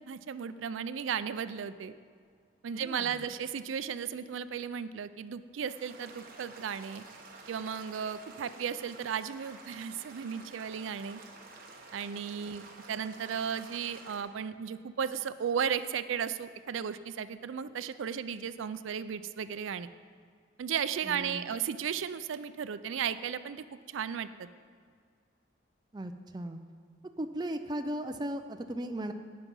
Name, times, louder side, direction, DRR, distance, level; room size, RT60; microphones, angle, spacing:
voice 1, 0.0-1.9 2.6-7.0 7.5-11.2 11.9-19.9 20.6-24.5, right 7 dB, 80° right, 13 dB, 0.4 m, -35 dB
voice 2, 2.7-3.2 21.0-21.5 25.9-26.6 27.2-29.1, right 1 dB, 20° right, 6 dB, 0.5 m, -37 dB
sound 1, 5.7-14.2, right 3 dB, 45° right, 1.3 m, -51 dB
18.0 x 5.9 x 5.4 m, 2.1 s
head